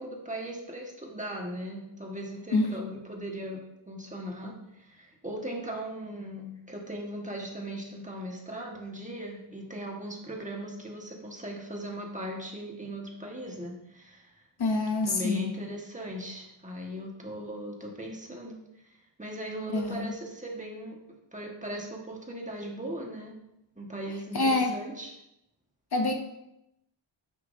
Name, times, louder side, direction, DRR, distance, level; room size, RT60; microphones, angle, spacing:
voice 1, 0.0-14.4 15.1-18.8 19.2-21.0 21.3-23.4 23.8-25.1, right 1 dB, 15° right, -1 dB, 1.4 m, -38 dB
voice 2, 14.6-15.5 19.7-20.1 24.3-24.7 25.9-26.1, left 3 dB, 50° left, 5 dB, 0.8 m, -26 dB
9.6 x 5.8 x 2.6 m, 0.85 s
wide cardioid pair, 110°, 48 cm